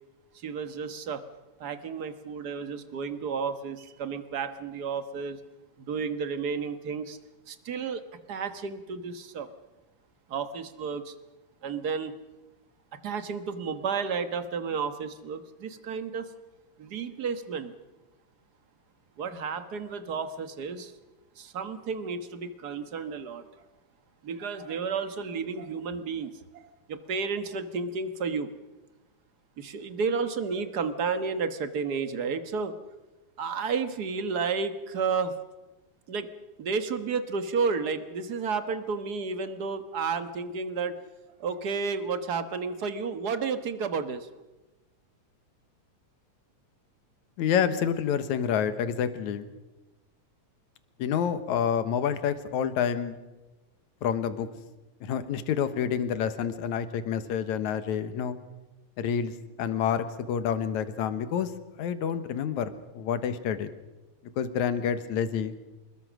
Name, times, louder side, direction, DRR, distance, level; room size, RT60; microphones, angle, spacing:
voice 1, 0.3-1.2 1.6-5.4 5.8-7.2 7.5-8.0 8.3-9.5 10.3-11.1 11.6-12.1 13.0-16.3 16.8-17.7 19.2-20.9 21.4-23.5 24.2-26.6 26.9-28.5 29.6-32.7 33.4-35.3 36.1-36.3 36.6-41.0 41.4-44.3, right 5 dB, 50° right, 10 dB, 1.3 m, -32 dB
voice 2, 47.4-49.5 51.0-53.2 54.0-54.5 55.0-58.4 59.0-59.3 59.6-61.5 61.8-63.7 64.4-65.5, left 8 dB, 85° left, 11 dB, 2.6 m, -28 dB
26.0 x 21.0 x 6.3 m, 1.1 s
omnidirectional pair, 3.3 m